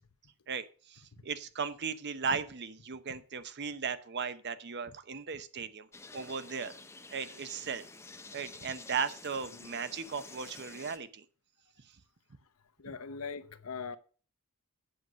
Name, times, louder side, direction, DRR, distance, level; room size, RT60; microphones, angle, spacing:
voice 1, 0.5-5.9 6.1-6.7 7.1-7.9 8.3-11.2, right 6 dB, 50° right, 0.8 m, -37 dB
sound 1, 5.9-11.0, left 3 dB, 10° left, 0.7 m, -50 dB
voice 2, 12.8-14.0, left 5 dB, 75° left, 0.8 m, -41 dB
8.0 x 7.8 x 6.2 m
head